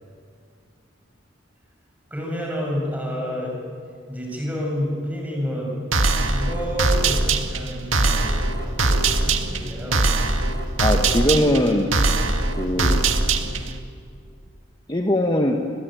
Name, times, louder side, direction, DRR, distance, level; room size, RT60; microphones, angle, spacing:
voice 1, 2.1-3.6 4.1-5.8 6.3-10.0, equal, 10° right, -2 dB, 7.4 m, -29 dB
sound 1, 5.9-13.8, right 3 dB, 80° right, 2.0 m, -22 dB
voice 2, 10.8-11.9 12.6-13.0 14.9-15.6, left 1 dB, 20° left, 2 dB, 1.4 m, -20 dB
29.0 x 21.0 x 9.1 m, 2.3 s
head